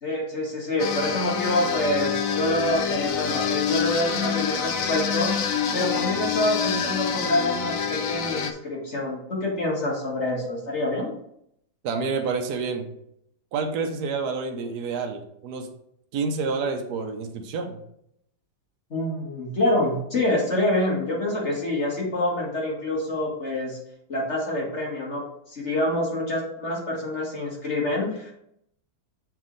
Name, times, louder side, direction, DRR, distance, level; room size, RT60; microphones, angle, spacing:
voice 1, 0.0-5.5 5.7-11.1 18.9-23.8 24.1-25.2 25.5-28.3, left 1 dB, 35° left, -3 dB, 2.0 m, -26 dB
sound 1, 0.8-8.5, left 6 dB, 80° left, 0.7 m, -26 dB
voice 2, 11.8-12.9 13.5-15.7 16.1-17.8, right 4 dB, 60° right, 4 dB, 1.2 m, -28 dB
7.1 x 4.7 x 4.0 m, 0.74 s
omnidirectional pair, 2.2 m